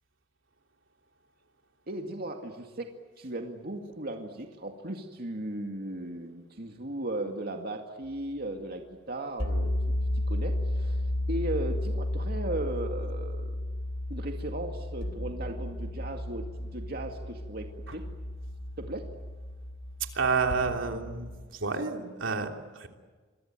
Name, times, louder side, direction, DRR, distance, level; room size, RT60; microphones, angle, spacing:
voice 1, 1.9-2.9 3.2-9.7 10.3-13.6 14.1-18.1 18.8-19.1, right 1 dB, 55° right, 3 dB, 2.2 m, -36 dB
sound 1, 9.4-21.4, left 1 dB, 80° left, 3.5 m, -33 dB
voice 2, 20.0-22.9, right 4 dB, 80° right, 3 dB, 3.2 m, -30 dB
27.5 x 23.0 x 9.1 m, 1.4 s
head